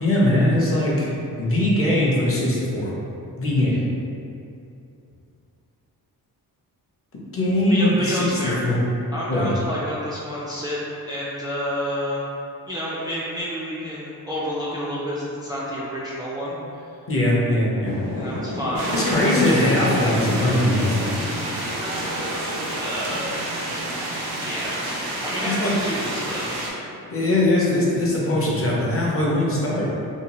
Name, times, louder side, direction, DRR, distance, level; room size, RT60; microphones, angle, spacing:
voice 1, 0.0-2.9 3.4-3.8 7.3-8.4 8.6-8.8 9.3-9.5 17.1-18.0 18.9-21.1 24.8-24.9 25.4-25.7 27.1-29.9, left 1 dB, 40° left, -5 dB, 0.6 m, -21 dB
voice 2, 7.7-8.6 9.1-10.8 11.1-12.2 12.7-16.8 18.2-19.0 22.8-23.4 24.4-24.8 25.2-26.6, equal, 10° right, -8 dB, 0.3 m, -29 dB
sound 1, 17.8-22.1, left 1 dB, 80° left, 0.6 m, -32 dB
sound 2, 18.8-26.7, right 1 dB, 90° right, 0.6 m, -29 dB
2.7 x 2.2 x 2.9 m, 2.6 s
cardioid pair, 110°, 37 cm